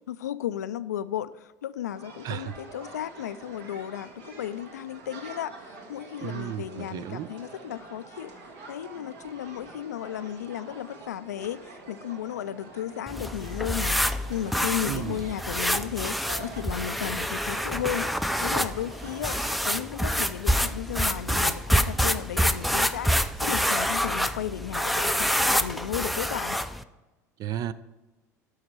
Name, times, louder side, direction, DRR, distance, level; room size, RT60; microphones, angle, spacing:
voice 1, 0.1-8.3 8.7-18.1 18.4-26.6, left 11 dB, 90° left, 15 dB, 0.4 m, -34 dB
sound 1, 1.8-19.6, right 3 dB, 65° right, 1.7 m, -46 dB
voice 2, 2.2-2.6 6.2-7.3 14.9-15.2 27.4-27.7, right 11 dB, 50° right, 16 dB, 0.5 m, -33 dB
sound 2, 13.1-26.8, equal, ahead, 0.5 m, -27 dB
11.5 x 6.5 x 4.5 m, 1.1 s
hypercardioid pair, 80°, 9 cm